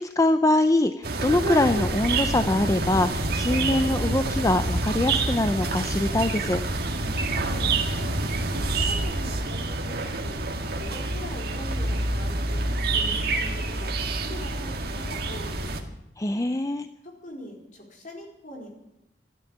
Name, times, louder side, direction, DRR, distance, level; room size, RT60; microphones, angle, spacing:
voice 1, 0.0-6.6 16.2-16.9, left 2 dB, 20° left, 9 dB, 0.5 m, -23 dB
sound 1, 1.0-15.8, right 2 dB, 60° right, 1.9 m, -27 dB
voice 2, 7.4-8.1 8.5-10.4 10.8-15.7 17.0-18.7, left 1 dB, 50° left, 0 dB, 4.4 m, -42 dB
13.5 x 12.5 x 8.8 m, 0.88 s
head